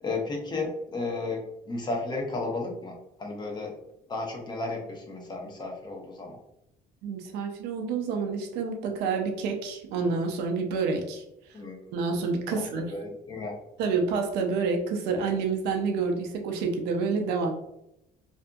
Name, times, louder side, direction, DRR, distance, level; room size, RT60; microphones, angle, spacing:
voice 1, 0.0-3.7 4.1-6.4 11.5-11.8 12.8-13.5, left 3 dB, 25° left, 0 dB, 0.8 m, -33 dB
voice 2, 7.0-11.2 11.9-12.9 13.8-17.5, right 4 dB, 85° right, 3 dB, 0.5 m, -28 dB
2.6 x 2.5 x 2.3 m, 0.80 s
cardioid pair, 110°, 17 cm